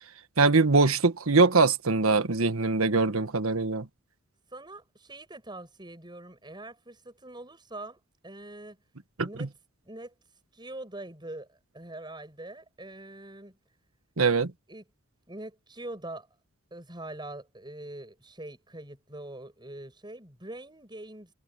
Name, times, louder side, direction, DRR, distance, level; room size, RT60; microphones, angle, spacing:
voice 1, 0.4-3.9 9.2-9.3 14.2-14.5, right 3 dB, 80° right, 1.5 m, -22 dB
voice 2, 4.5-8.8 9.2-9.5 9.9-10.1 10.5-13.6 14.7-14.8 15.3-16.3 16.7-21.3, right 1 dB, 20° right, 7.5 m, -43 dB
head